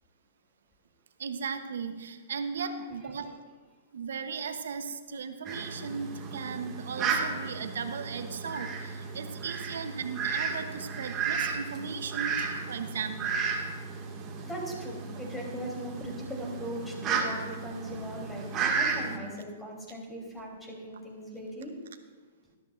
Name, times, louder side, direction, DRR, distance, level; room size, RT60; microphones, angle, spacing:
voice 1, 1.2-3.4 3.9-13.4, right 5 dB, 75° right, 8 dB, 0.9 m, -37 dB
Fowl, 5.4-19.2, right 5 dB, 30° right, 1.9 m, -34 dB
voice 2, 14.4-21.7, equal, 10° left, -2 dB, 3.3 m, -39 dB
13.0 x 12.5 x 2.5 m, 1.4 s
hypercardioid pair, 125°, 0 cm